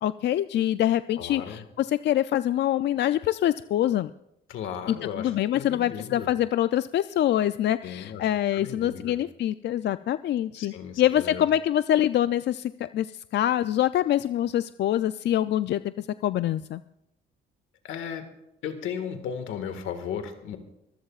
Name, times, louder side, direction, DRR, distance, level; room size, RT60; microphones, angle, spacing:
voice 1, 0.0-4.1 4.9-16.8, left 12 dB, 60° left, 13 dB, 0.4 m, -25 dB
voice 2, 1.2-1.6 4.5-6.3 7.8-9.2 10.6-11.5 17.8-18.3 18.6-20.6, left 8 dB, 85° left, 7 dB, 1.8 m, -36 dB
24.5 x 15.0 x 2.4 m, 0.83 s
cardioid pair, 90°, 20 cm